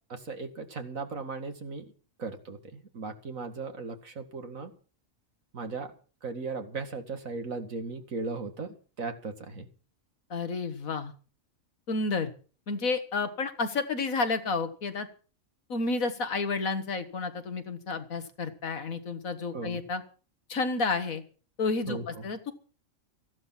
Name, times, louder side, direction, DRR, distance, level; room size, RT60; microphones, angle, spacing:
voice 1, 0.1-1.9 2.2-4.7 5.5-5.9 6.2-9.7 19.5-19.8 21.9-22.2, right 4 dB, 75° right, 7 dB, 2.4 m, -37 dB
voice 2, 10.3-11.1 11.9-12.3 12.7-15.1 15.7-20.0 20.5-21.2 21.6-22.5, left 3 dB, 80° left, 9 dB, 2.0 m, -30 dB
15.0 x 12.0 x 5.8 m, 0.38 s
omnidirectional pair, 1.4 m